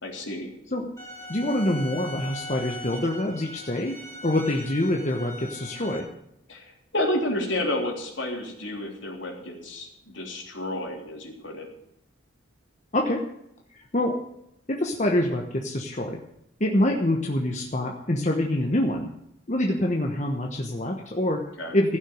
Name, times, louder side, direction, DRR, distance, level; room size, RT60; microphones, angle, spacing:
voice 1, 0.0-0.5 6.5-11.7 21.6-21.7, left 1 dB, 65° left, 0 dB, 3.4 m, -30 dB
sound 1, 1.0-6.0, left 1 dB, 15° left, 3.3 m, -40 dB
voice 2, 1.3-4.0 4.2-6.1 12.9-13.2 13.9-14.1 14.7-16.2 16.6-19.1 19.5-21.4 21.7-22.0, left 1 dB, 35° left, 1 dB, 1.1 m, -25 dB
15.0 x 6.4 x 9.3 m, 0.77 s
head